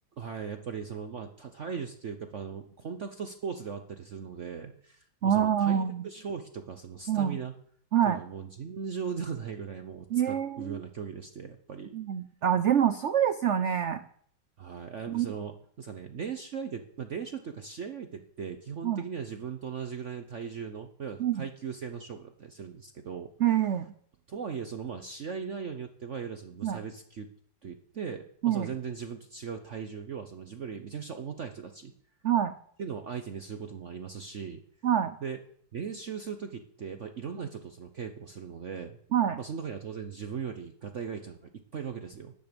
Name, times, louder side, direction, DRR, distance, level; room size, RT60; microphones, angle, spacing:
voice 1, 0.2-7.5 8.1-12.0 14.6-23.3 24.3-27.3 27.6-31.9 32.8-34.6 35.2-35.4 35.7-39.0 39.4-42.3, right 6 dB, 50° right, 7 dB, 1.0 m, -38 dB
voice 2, 5.2-6.0 7.1-7.4 7.9-8.2 10.1-10.8 11.9-14.0 15.1-15.3 18.8-19.0 21.2-21.4 23.4-23.9 26.6-26.8 28.4-28.7 32.2-32.5 34.8-35.2 39.1-39.4, right 9 dB, 80° right, 12 dB, 0.6 m, -26 dB
13.5 x 10.5 x 5.2 m, 0.62 s
omnidirectional pair, 2.0 m